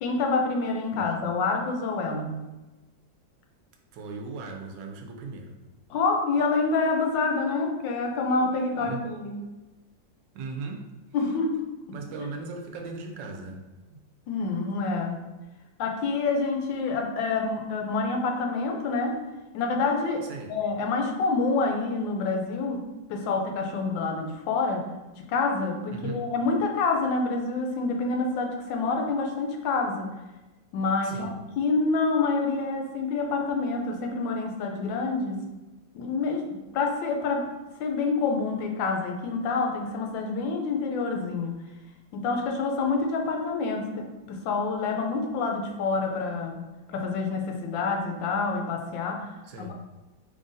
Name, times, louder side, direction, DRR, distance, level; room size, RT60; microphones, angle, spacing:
voice 1, 0.0-2.4 5.9-9.4 11.1-11.6 12.2-12.3 14.3-15.3 15.8-19.2 19.5-24.8 25.3-30.1 30.7-35.5 35.9-37.5 37.8-41.5 42.1-49.2 49.6-49.7, left 3 dB, 85° left, 2 dB, 1.3 m, -27 dB
voice 2, 3.9-5.5 8.8-9.0 10.3-10.8 11.9-13.6 13.9-14.0 20.3-20.5 25.9-26.2 31.0-31.3 49.4-49.7, right 4 dB, 80° right, 2 dB, 1.2 m, -38 dB
3.7 x 3.4 x 2.6 m, 1.1 s
omnidirectional pair, 2.0 m